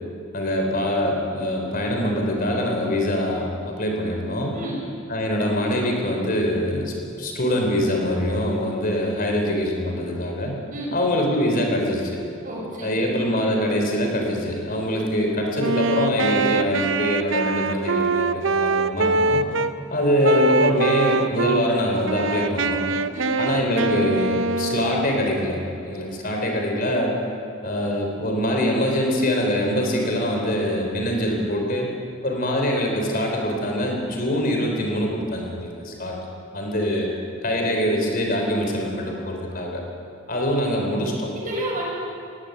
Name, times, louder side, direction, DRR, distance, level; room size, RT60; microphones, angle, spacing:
voice 1, 0.3-4.5 5.1-10.6 10.9-12.2 12.8-19.5 19.9-22.8 23.4-27.1 27.6-31.9 32.2-36.2 36.5-37.1 37.4-39.8 40.3-41.3, left 1 dB, 45° left, 1 dB, 3.8 m, -24 dB
voice 2, 4.5-4.8 10.7-11.0 12.4-13.1 23.1-23.4 41.3-41.9, right 1 dB, 40° right, -2 dB, 6.5 m, -31 dB
Wind instrument woodwind instrument, 15.5-19.7 20.2-21.6 22.0-25.3, right 3 dB, 65° right, 0.8 m, -23 dB
20.5 x 18.0 x 8.1 m, 2.4 s
head